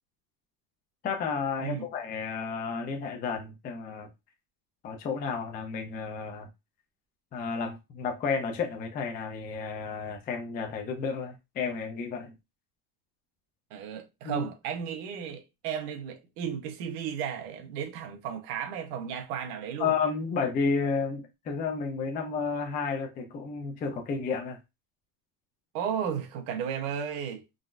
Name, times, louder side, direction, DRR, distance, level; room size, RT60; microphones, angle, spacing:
voice 1, 1.0-4.1 4.8-6.5 7.3-12.3 14.2-14.5 19.8-24.6, left 5 dB, 20° left, 0.4 m, -32 dB
voice 2, 13.7-19.9 25.7-27.5, right 8 dB, 90° right, 1.0 m, -34 dB
3.8 x 2.1 x 2.5 m
cardioid pair, 155°, 46 cm